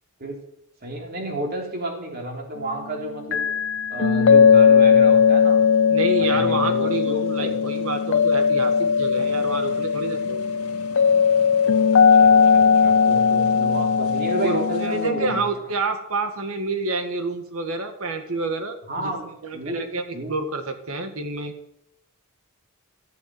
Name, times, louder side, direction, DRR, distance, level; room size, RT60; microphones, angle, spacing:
voice 1, 0.8-3.5 3.9-5.6 6.3-7.5 12.1-15.5 18.9-19.3 19.5-19.8 20.1-20.3, right 1 dB, 45° right, 1 dB, 3.5 m, -31 dB
sound 1, 3.3-15.4, left 6 dB, 55° left, 0.5 m, -18 dB
sound 2, 5.0-15.1, left 2 dB, 85° left, 2.0 m, -44 dB
voice 2, 5.9-10.4 14.4-19.1 19.4-21.5, right 3 dB, 65° right, 6 dB, 2.0 m, -28 dB
14.5 x 8.2 x 7.9 m, 0.78 s
head